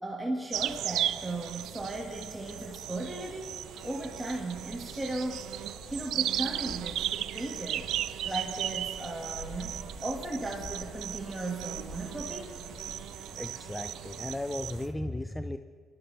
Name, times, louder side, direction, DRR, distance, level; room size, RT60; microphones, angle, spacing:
voice 1, 0.0-3.5 3.8-5.5 5.9-7.9 8.2-9.8 10.0-12.5, right 2 dB, 10° right, -1 dB, 1.8 m, -36 dB
sound 1, 0.5-14.9, left 1 dB, 30° left, 3.3 m, -52 dB
sound 2, 0.5-14.9, right 12 dB, 70° right, 0.4 m, -36 dB
sound 3, 3.6-13.0, left 1 dB, 75° left, 3.3 m, -49 dB
voice 2, 13.3-15.6, left 1 dB, 10° left, 10 dB, 0.5 m, -35 dB
23.5 x 12.5 x 3.4 m, 2.1 s
supercardioid pair, 75°, 0 cm